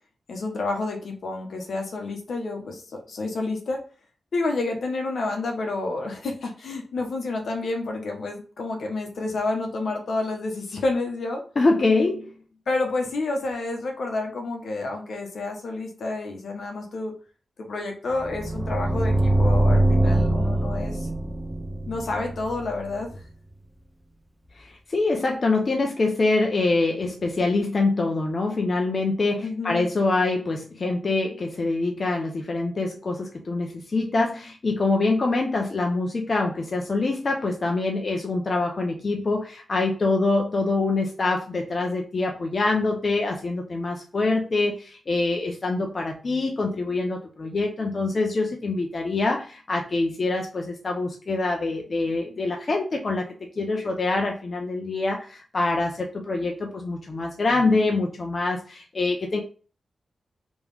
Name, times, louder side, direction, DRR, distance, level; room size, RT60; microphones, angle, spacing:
voice 1, 0.3-3.8 4.3-11.4 12.7-17.1 17.6-21.1 21.9-23.2 29.4-29.9, left 3 dB, 75° left, 2 dB, 1.0 m, -29 dB
voice 2, 11.6-12.3 24.6-53.3 53.6-59.4, left 3 dB, 50° left, 1 dB, 0.7 m, -25 dB
sound 1, 18.1-23.1, right 1 dB, 10° right, 0.6 m, -23 dB
3.4 x 3.1 x 3.4 m, 0.38 s
cardioid pair, 60°, 0 cm